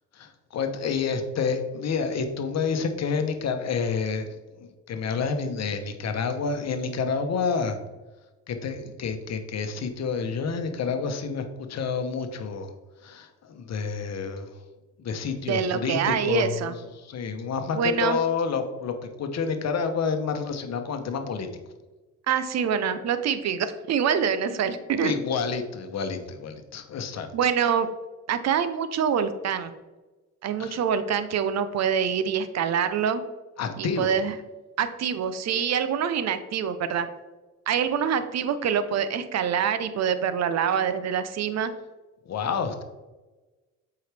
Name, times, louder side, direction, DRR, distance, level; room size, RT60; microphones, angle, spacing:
voice 1, 0.1-4.3 4.6-7.8 8.5-12.7 13.0-14.5 15.0-21.5 25.0-27.3 30.6-30.8 33.6-34.1 42.3-42.8, left 5 dB, 60° left, 7 dB, 1.0 m, -29 dB
voice 2, 15.5-16.7 17.7-18.2 22.3-25.1 27.3-27.9 28.3-29.7 30.4-33.2 33.8-34.3 34.8-37.1 37.7-41.7, right 7 dB, 60° right, 11 dB, 0.7 m, -25 dB
7.7 x 4.8 x 3.4 m, 1.2 s
cardioid pair, 90°, 30 cm